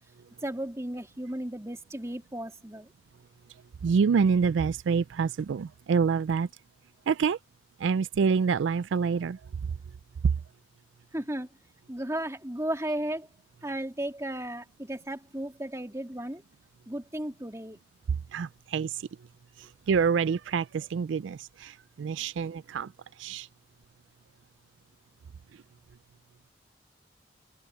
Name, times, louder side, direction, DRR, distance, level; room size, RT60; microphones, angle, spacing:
voice 1, 0.4-2.9 11.1-11.5 11.9-13.3 13.6-16.4 16.9-17.8, right 1 dB, 15° right, 3.2 m, -34 dB
voice 2, 3.8-6.5 7.1-7.4 7.8-9.4 10.2-10.3 18.3-19.1 19.6-22.9 23.2-23.5, right 6 dB, 90° right, 0.4 m, -27 dB
open air
head